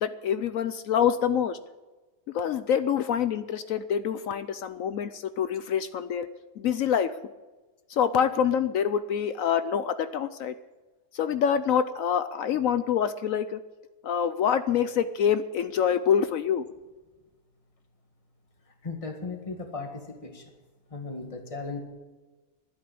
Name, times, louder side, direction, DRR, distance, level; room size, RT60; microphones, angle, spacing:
voice 1, 0.0-1.6 2.3-6.3 6.6-7.1 7.9-10.5 11.1-13.6 14.0-16.6, left 8 dB, 70° left, 12 dB, 0.9 m, -26 dB
voice 2, 18.8-20.4 20.9-21.8, left 3 dB, 20° left, 4 dB, 1.8 m, -36 dB
12.0 x 10.5 x 8.5 m, 1.2 s
omnidirectional pair, 1.6 m